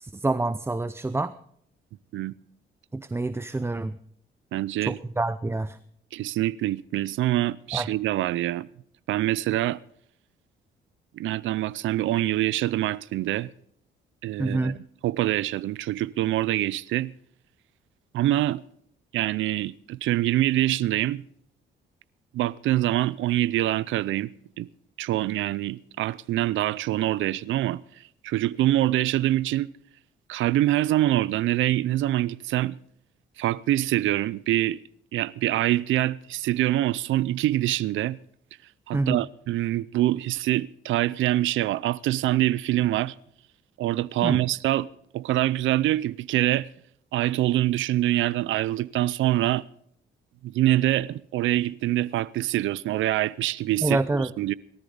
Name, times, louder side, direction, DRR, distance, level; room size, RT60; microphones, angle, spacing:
voice 1, 0.0-1.3 2.9-4.0 4.8-5.8 7.7-7.9 14.4-14.8 38.9-39.2 44.2-44.4 53.8-54.3, right 2 dB, 10° right, 0.6 m, -27 dB
voice 2, 4.5-5.0 6.1-8.7 9.1-9.8 11.1-13.5 14.2-14.7 15.0-17.1 18.1-18.6 19.1-21.2 22.3-24.7 25.0-27.8 28.2-29.7 30.3-32.8 33.4-34.8 35.1-38.2 38.9-43.1 43.8-44.9 45.1-46.7 47.1-49.6 50.4-54.5, right 14 dB, 75° right, 0.5 m, -25 dB
18.5 x 13.5 x 3.9 m
cardioid pair, 90°, 20 cm